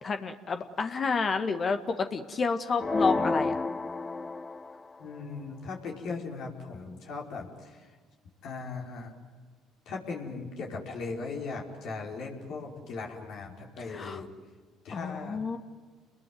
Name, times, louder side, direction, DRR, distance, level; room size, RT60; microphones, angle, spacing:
voice 1, 0.0-3.6 13.9-14.2 14.9-15.6, left 4 dB, 40° left, 7 dB, 1.8 m, -30 dB
sound 1, 2.8-4.9, left 3 dB, 25° left, 0.9 m, -30 dB
voice 2, 5.0-8.0 8.4-9.1 9.8-14.3 14.8-15.4, left 4 dB, 65° left, 0 dB, 4.9 m, -38 dB
29.5 x 21.5 x 9.4 m, 1.4 s
supercardioid pair, 70°, 0 cm